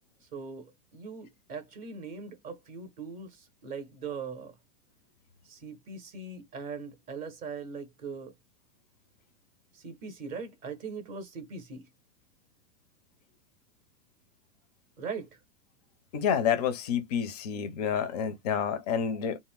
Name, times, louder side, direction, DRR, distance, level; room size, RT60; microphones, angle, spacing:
voice 1, 0.3-4.6 5.4-8.3 9.7-11.9 15.0-15.4, right 5 dB, 20° right, 0.6 m, -40 dB
voice 2, 16.1-19.4, left 8 dB, 30° left, 0.4 m, -29 dB
2.4 x 2.1 x 3.4 m
hypercardioid pair, 145°, 43 cm